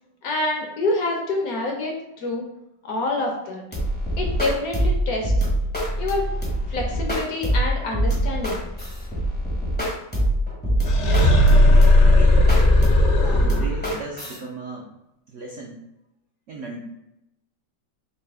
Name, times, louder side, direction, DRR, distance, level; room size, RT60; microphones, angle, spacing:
voice 1, 0.2-2.5 2.8-3.6 4.2-5.3 6.0-6.3 6.7-8.6, left 2 dB, 65° left, 0 dB, 1.0 m, -27 dB
sound 1, 3.7-14.4, right 1 dB, 10° left, 0.4 m, -24 dB
voice 2, 10.8-11.4 12.0-12.4 13.2-14.9 15.3-15.8 16.5-16.8, right 2 dB, 75° right, -1 dB, 0.7 m, -36 dB
sound 2, 10.9-13.9, left 1 dB, 80° left, 0.6 m, -15 dB
4.1 x 2.7 x 3.5 m, 0.85 s
omnidirectional pair, 2.0 m